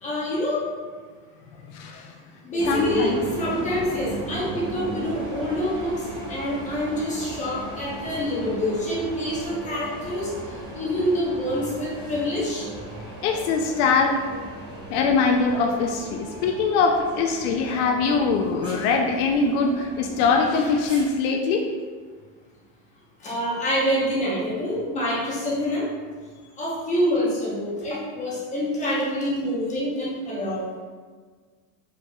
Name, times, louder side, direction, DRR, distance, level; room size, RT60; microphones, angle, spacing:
voice 1, 0.0-0.6 2.4-6.0 6.3-10.3 10.7-12.7 23.2-25.9 26.6-30.6, equal, 15° left, -7 dB, 0.9 m, -26 dB
voice 2, 1.7-2.1 2.7-3.2 13.2-14.2 14.9-21.7, left 4 dB, 70° left, 2 dB, 0.6 m, -22 dB
sound 1, 2.6-21.1, right 2 dB, 10° right, 0.5 m, -36 dB
5.2 x 4.2 x 2.3 m, 1.5 s
supercardioid pair, 170°, 46 cm